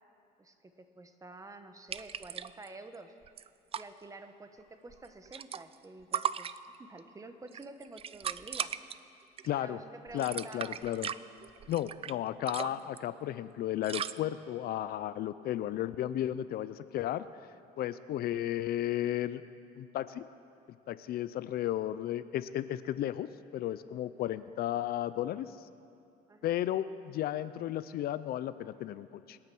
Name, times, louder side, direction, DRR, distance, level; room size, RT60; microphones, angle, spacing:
voice 1, 0.4-3.1 3.8-8.7 9.6-10.8 26.3-26.5, right 2 dB, 20° right, 8 dB, 1.1 m, -49 dB
sound 1, 1.9-2.7 2.9-3.0 3.2-3.8 4.9-5.8 6.1-7.0 7.5-8.9 9.4-9.7 10.1-12.2 12.5-13.0 13.8-14.2, right 8 dB, 35° right, 0.4 m, -37 dB
voice 2, 9.4-9.8 10.1-11.1 11.7-17.3 17.8-19.4 19.8-20.2 20.9-23.3 23.5-25.5 26.4-29.4, left 12 dB, 65° left, 14 dB, 0.6 m, -34 dB
25.5 x 8.9 x 6.1 m, 2.4 s
cardioid pair, 110°, 17 cm